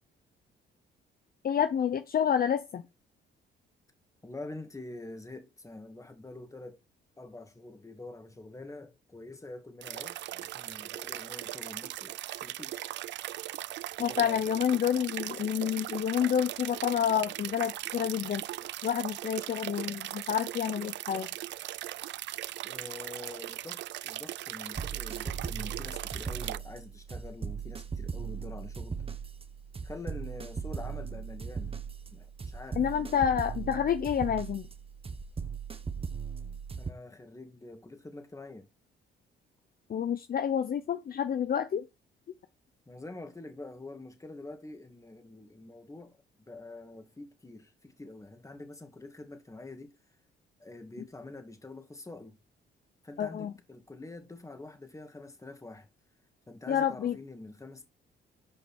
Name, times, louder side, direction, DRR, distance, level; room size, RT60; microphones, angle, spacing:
voice 1, 1.4-2.8 14.0-18.4 18.8-21.3 32.8-34.7 39.9-41.8 53.2-53.5 56.7-57.2, left 8 dB, 50° left, 0.8 m, -29 dB
voice 2, 4.2-6.8 7.2-13.0 14.0-14.5 22.6-29.0 29.8-31.8 32.1-33.3 36.8-38.7 42.9-50.0 50.6-52.4 53.0-55.9 56.5-57.9, left 2 dB, 15° left, 2.3 m, -46 dB
sound 1, 9.8-26.6, right 14 dB, 65° right, 0.4 m, -39 dB
sound 2, 24.7-36.9, right 6 dB, 30° right, 1.4 m, -38 dB
9.4 x 5.4 x 4.4 m
cardioid pair, 90°, 20 cm